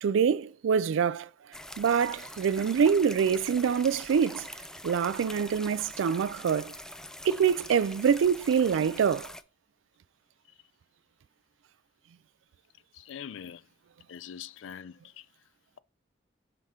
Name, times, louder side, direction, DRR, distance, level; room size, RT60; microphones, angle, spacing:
voice 1, 0.0-1.3 1.8-4.5 4.8-6.7 7.2-9.3, right 7 dB, 85° right, 0.3 m, -25 dB
sound 1, 1.5-9.4, left 1 dB, 5° left, 0.3 m, -44 dB
voice 2, 12.9-13.6 14.1-15.3, left 8 dB, 80° left, 0.4 m, -43 dB
5.7 x 3.6 x 5.0 m
head